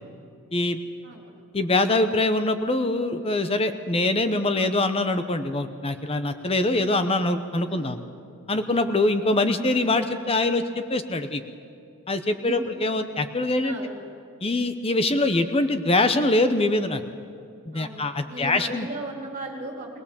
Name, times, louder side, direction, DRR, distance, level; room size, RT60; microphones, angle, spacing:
voice 1, 1.0-1.4 7.6-8.1 12.4-12.7 13.6-14.0 17.7-19.9, right 2 dB, 35° right, 0 dB, 3.7 m, -37 dB
voice 2, 1.5-8.0 8.5-11.4 12.1-13.8 14.4-17.0 17.7-18.9, left 2 dB, 25° left, 9 dB, 0.8 m, -23 dB
21.0 x 20.5 x 7.1 m, 2.5 s
head